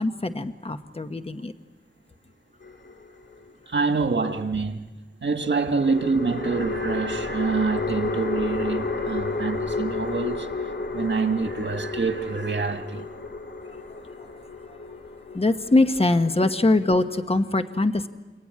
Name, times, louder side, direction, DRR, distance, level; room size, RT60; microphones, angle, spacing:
voice 1, 0.0-1.5 15.3-18.1, left 2 dB, 30° left, 1.1 m, -22 dB
sound 1, 2.6-3.5 5.7-17.1, left 3 dB, 75° left, 2.7 m, -32 dB
voice 2, 3.7-4.8 5.2-10.5 10.9-13.1, right 4 dB, 85° right, 1.8 m, -26 dB
30.0 x 18.0 x 9.7 m
wide cardioid pair, 80°, 18 cm